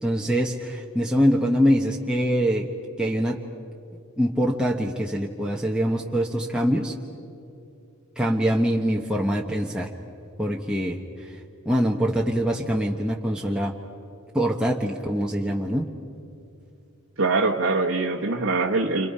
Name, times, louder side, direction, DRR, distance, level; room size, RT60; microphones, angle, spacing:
voice 1, 0.0-2.7 3.0-3.4 4.2-6.9 8.2-9.9 10.4-11.4 11.6-13.7 14.3-15.9, equal, 5° right, -2 dB, 1.1 m, -24 dB
voice 2, 17.2-19.1, right 3 dB, 65° right, -1 dB, 1.2 m, -23 dB
29.5 x 26.5 x 5.6 m, 2.6 s
head